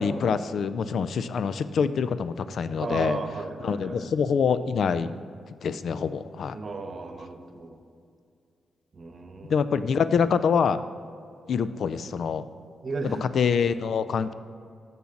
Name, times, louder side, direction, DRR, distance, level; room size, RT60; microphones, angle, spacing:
voice 1, 0.0-3.2 3.6-5.2 5.6-6.6 9.5-10.8 11.5-12.4 13.0-14.3, left 6 dB, 70° left, 13 dB, 0.4 m, -25 dB
voice 2, 2.8-4.1 6.5-7.8 8.9-9.8 12.8-13.2, right 3 dB, 50° right, 6 dB, 1.0 m, -35 dB
7.1 x 6.3 x 5.8 m, 2.3 s
cardioid pair, 65°, 0 cm